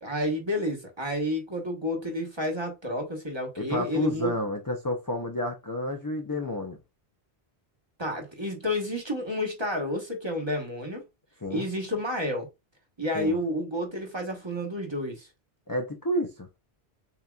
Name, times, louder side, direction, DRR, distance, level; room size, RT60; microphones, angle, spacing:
voice 1, 0.0-4.3 8.0-11.0 11.5-12.5 13.0-15.3, left 1 dB, 25° right, 1.2 m, -30 dB
voice 2, 3.6-6.8 11.4-11.7 13.1-13.4 15.7-16.5, left 1 dB, 25° left, 0.5 m, -30 dB
7.0 x 2.8 x 2.4 m
omnidirectional pair, 1.1 m